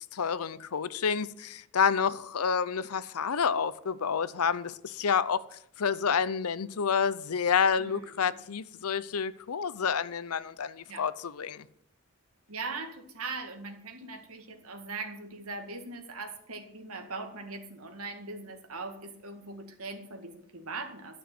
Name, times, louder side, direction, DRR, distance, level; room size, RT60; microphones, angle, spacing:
voice 1, 0.1-5.4 5.8-11.6, left 6 dB, 85° left, 0.6 m, -29 dB
voice 2, 7.8-8.3 10.9-11.1 12.5-21.2, right 3 dB, 80° right, 1.9 m, -40 dB
12.0 x 6.2 x 7.9 m
head